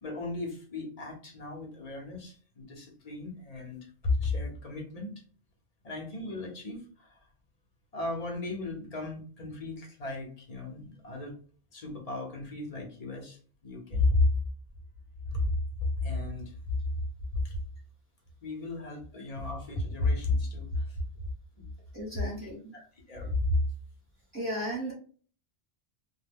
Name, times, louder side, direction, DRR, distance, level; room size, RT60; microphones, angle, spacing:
voice 1, 0.0-5.1 5.8-7.2 7.9-11.3 11.7-14.3 15.3-15.5 15.8-16.5 17.4-17.6 18.4-21.0 21.6-21.7 22.7-23.6, left 2 dB, 40° left, 0 dB, 0.8 m, -33 dB
voice 2, 21.9-22.7 24.3-24.9, equal, 10° right, -7 dB, 1.0 m, -35 dB
2.3 x 2.1 x 3.4 m, 0.41 s
omnidirectional pair, 1.2 m